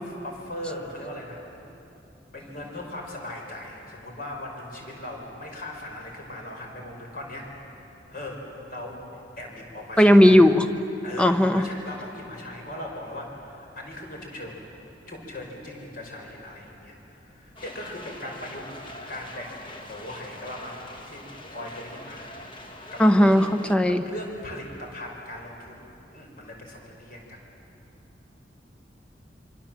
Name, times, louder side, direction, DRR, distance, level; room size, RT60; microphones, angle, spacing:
voice 1, 0.0-1.4 2.3-7.6 8.1-9.0 9.4-10.5 11.0-14.6 15.1-18.7 19.1-23.4 23.9-25.8 26.1-27.4, left 1 dB, 50° left, 1 dB, 5.1 m, -39 dB
voice 2, 10.0-10.7 11.2-11.7 23.0-24.0, equal, 5° left, 9 dB, 0.8 m, -16 dB
sound 1, 17.6-23.8, left 1 dB, 25° left, 1.7 m, -43 dB
26.0 x 25.5 x 7.5 m, 2.8 s
head